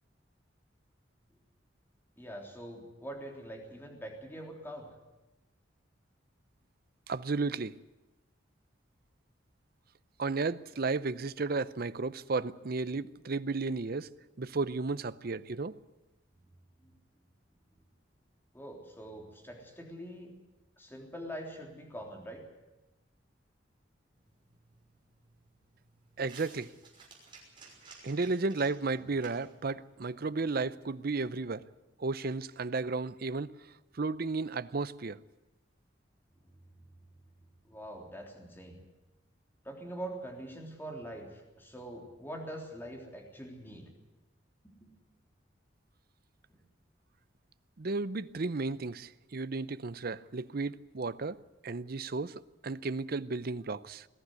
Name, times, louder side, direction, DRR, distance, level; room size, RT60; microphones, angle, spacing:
voice 1, 2.2-4.9 16.8-16.9 18.5-20.3 20.8-22.4 37.6-38.8 39.6-43.9 44.8-44.9, right 1 dB, 10° left, 3.4 m, -44 dB
voice 2, 7.1-7.8 10.2-14.1 14.4-15.8 26.2-26.7 28.0-31.6 32.0-33.5 33.9-35.2 47.8-54.1, right 3 dB, 50° right, 0.6 m, -33 dB
sound 1, 24.1-31.0, right 4 dB, 25° right, 6.0 m, -57 dB
21.5 x 14.5 x 9.6 m
head